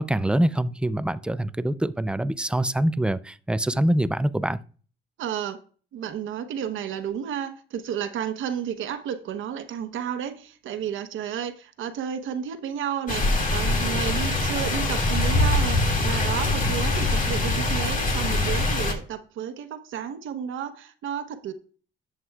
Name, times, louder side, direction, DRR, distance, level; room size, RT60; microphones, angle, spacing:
voice 1, 0.0-4.6, right 1 dB, 5° right, 0.4 m, -24 dB
voice 2, 5.2-5.6 5.9-21.5, right 8 dB, 80° right, 1.0 m, -32 dB
sound 1, 13.1-18.9, left 2 dB, 40° left, 2.2 m, -23 dB
11.0 x 7.8 x 2.4 m
cardioid pair, 90°, 20 cm